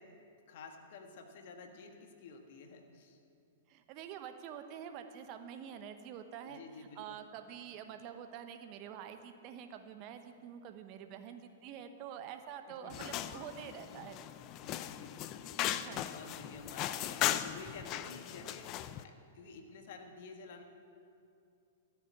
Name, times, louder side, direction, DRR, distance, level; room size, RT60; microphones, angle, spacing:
voice 1, 0.0-3.2 6.4-7.2 12.7-13.0 14.6-20.6, left 4 dB, 55° left, 4 dB, 1.6 m, -51 dB
voice 2, 3.7-6.6 7.0-14.2 15.8-16.2, right 9 dB, 40° right, 7 dB, 1.0 m, -47 dB
sound 1, 12.9-19.0, left 12 dB, 35° left, 0.5 m, -38 dB
14.0 x 7.1 x 8.3 m, 2.5 s
figure-of-eight pair, 105°, 0 cm